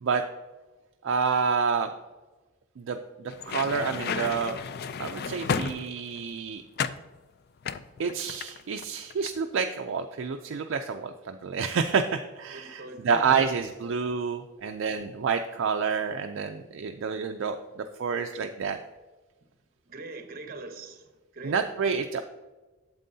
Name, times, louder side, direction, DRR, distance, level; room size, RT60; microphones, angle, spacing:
voice 1, 1.0-1.9 2.8-4.6 5.0-6.6 8.0-18.8 21.4-22.2, right 5 dB, 60° right, 5 dB, 0.4 m, -28 dB
sound 1, 3.3-6.2 6.8-7.1 7.6-8.8 9.1-9.4, left 6 dB, 50° left, 0.3 m, -32 dB
voice 2, 12.5-13.5 19.9-21.6, right 2 dB, 45° right, 6 dB, 0.9 m, -42 dB
9.0 x 7.4 x 2.7 m, 1.2 s
head